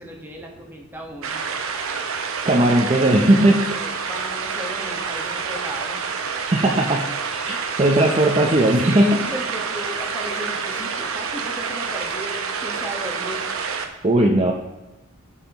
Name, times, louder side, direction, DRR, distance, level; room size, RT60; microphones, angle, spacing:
voice 1, 0.0-1.4 3.7-6.0 8.7-13.4, equal, 10° right, -1 dB, 1.2 m, -35 dB
sound 1, 1.2-13.9, right 5 dB, 85° right, 0.8 m, -28 dB
voice 2, 2.4-3.7 6.5-7.1 7.4-9.2 14.0-14.5, right 1 dB, 30° right, 0 dB, 0.6 m, -17 dB
14.5 x 5.6 x 3.0 m, 1.0 s
head